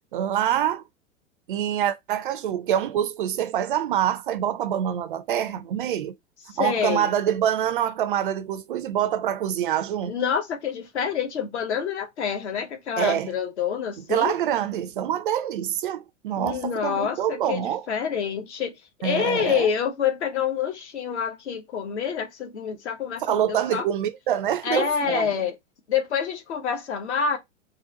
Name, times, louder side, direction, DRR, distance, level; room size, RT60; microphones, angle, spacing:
voice 1, 0.1-0.8 1.5-6.2 6.5-10.1 13.0-13.3 14.1-17.9 19.0-19.7 23.2-25.3, right 10 dB, 45° right, 0.4 m, -25 dB
voice 2, 6.5-7.1 10.1-14.4 16.4-18.8 19.0-23.9 24.6-25.5 25.9-27.4, left 7 dB, 60° left, 1.1 m, -27 dB
3.8 x 2.1 x 3.9 m
figure-of-eight pair, 100°, 39 cm